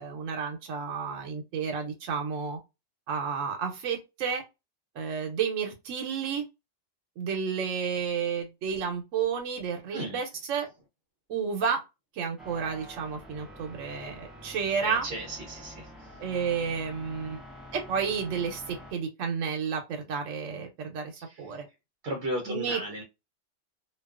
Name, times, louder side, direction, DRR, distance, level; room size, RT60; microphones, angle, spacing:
voice 1, 0.0-2.6 3.1-4.4 5.0-6.5 7.2-10.7 11.3-11.8 12.1-15.1 16.2-17.4 17.7-21.1 21.4-21.7 22.5-23.0, right 6 dB, 90° right, 1.0 m, -31 dB
sound 1, 12.4-18.9, equal, ahead, 0.4 m, -47 dB
voice 2, 14.8-15.9 22.0-23.0, right 1 dB, 60° right, 0.8 m, -34 dB
2.4 x 2.2 x 2.3 m
omnidirectional pair, 1.3 m